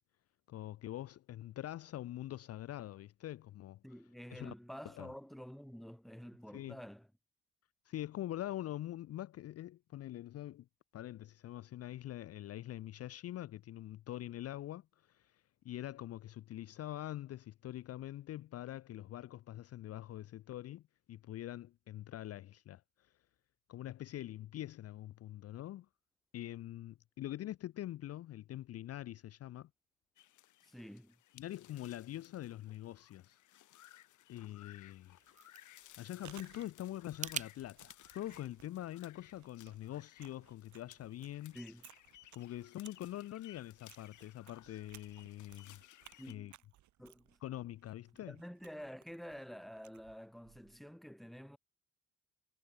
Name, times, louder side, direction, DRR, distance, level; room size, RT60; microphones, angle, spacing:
voice 1, 0.5-3.8 4.3-4.5 5.0-5.1 6.5-6.8 7.9-10.7 10.9-23.1 23.7-25.9 26.3-29.7 31.3-33.4 33.9-35.2 36.0-41.6 42.3-45.8 46.3-46.5 47.4-48.4, left 13 dB, 55° left, 0.5 m, -44 dB
voice 2, 3.8-7.1 30.6-31.2 41.5-41.9 46.2-46.6 47.0-47.4 48.3-51.6, equal, ahead, 1.8 m, -49 dB
sound 1, 30.2-46.3, left 14 dB, 80° left, 2.0 m, -60 dB
sound 2, 34.9-37.5, right 7 dB, 25° right, 0.4 m, -46 dB
Chewing mastication, 35.8-50.9, right 13 dB, 70° right, 1.2 m, -62 dB
cardioid pair, 90°, 30 cm